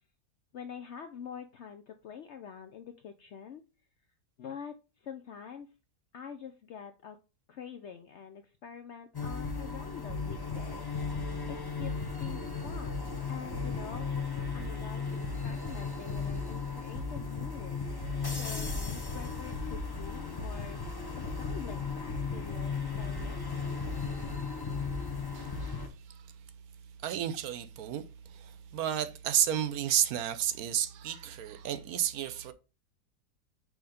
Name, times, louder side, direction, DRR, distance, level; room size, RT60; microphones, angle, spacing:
voice 1, 0.5-3.6 4.4-5.7 6.1-7.2 7.5-10.9 11.5-15.0 15.4-17.8 18.4-20.8 21.1-23.4, left 7 dB, 70° left, 0.6 m, -46 dB
sound 1, 9.1-25.9, left 4 dB, 20° left, 0.6 m, -35 dB
voice 2, 25.3-25.8 27.0-28.0 28.3-32.5, right 10 dB, 75° right, 1.1 m, -31 dB
6.3 x 3.2 x 5.0 m
omnidirectional pair, 1.7 m